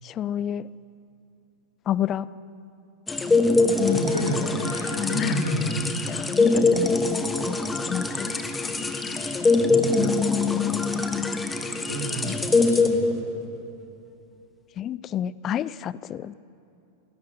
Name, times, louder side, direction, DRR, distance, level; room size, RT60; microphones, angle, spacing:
voice 1, 0.0-0.7 1.9-2.3 3.8-4.0 5.0-5.4 6.1-8.3 9.1-9.2 10.0-11.5 12.2-12.4 14.8-16.3, left 10 dB, 30° left, 20 dB, 0.5 m, -29 dB
sound 1, 3.1-13.6, left 3 dB, 10° left, 1.5 m, -24 dB
voice 2, 3.7-5.7 9.6-10.1 11.9-12.4 12.7-13.1, equal, 80° left, -3 dB, 5.6 m, -30 dB
19.5 x 18.0 x 9.4 m, 2.7 s
figure-of-eight pair, 90°, 0 cm